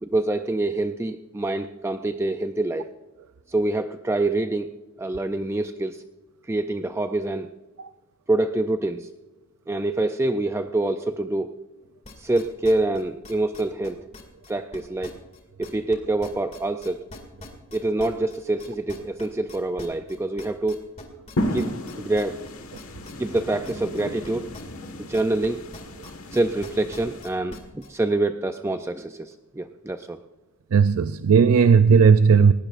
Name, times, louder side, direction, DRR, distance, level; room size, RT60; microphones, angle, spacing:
voice 1, 0.0-2.9 3.5-4.7 5.0-6.0 6.5-7.5 8.3-9.1 9.7-11.5 12.2-14.0 14.5-15.2 15.6-17.0 17.7-20.8 21.5-22.4 23.2-24.5 25.0-25.6 26.3-30.2, right 2 dB, 10° right, 8 dB, 0.4 m, -26 dB
sound 1, 12.0-16.0 16.2-25.5 25.7-27.9, left 2 dB, 30° left, 2.2 m, -43 dB
sound 2, 21.4-27.2, left 1 dB, 80° left, 1.5 m, -33 dB
voice 2, 30.7-32.5, right 6 dB, 85° right, 12 dB, 0.4 m, -15 dB
19.0 x 18.5 x 2.5 m, 1.1 s
head